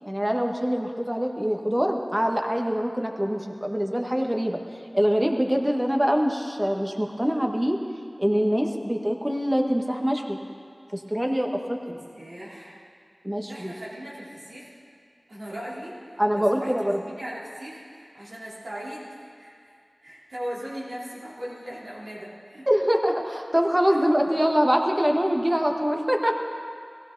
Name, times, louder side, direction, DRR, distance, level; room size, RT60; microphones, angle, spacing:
voice 1, 0.0-4.6 4.9-7.8 8.2-10.4 10.9-11.9 13.2-13.7 16.2-17.0 22.7-26.3, equal, 15° right, 2 dB, 1.4 m, -24 dB
voice 2, 12.1-12.8 13.5-14.7 15.3-16.7 17.1-19.0 19.4-19.5 20.0-22.7 23.9-24.0, equal, 85° right, -7 dB, 3.6 m, -38 dB
16.5 x 16.5 x 4.0 m, 2.3 s
wide cardioid pair, 45°, 0 cm